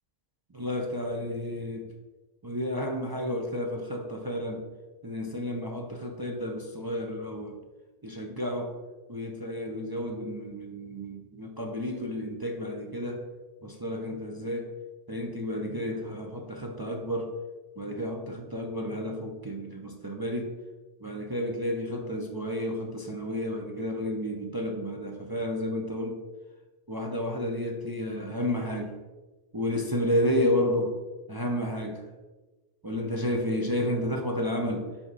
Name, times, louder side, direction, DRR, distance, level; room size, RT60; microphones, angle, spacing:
voice 1, 0.5-1.9 2.4-4.6 5.0-7.6 8.0-8.7 9.1-13.3 13.6-14.7 15.1-17.3 17.8-20.5 21.0-26.2 26.9-28.9 29.5-30.9 31.3-32.0 32.8-34.9, left 1 dB, 30° right, 1 dB, 0.5 m, -31 dB
6.2 x 4.9 x 4.0 m, 1.2 s
omnidirectional pair, 1.2 m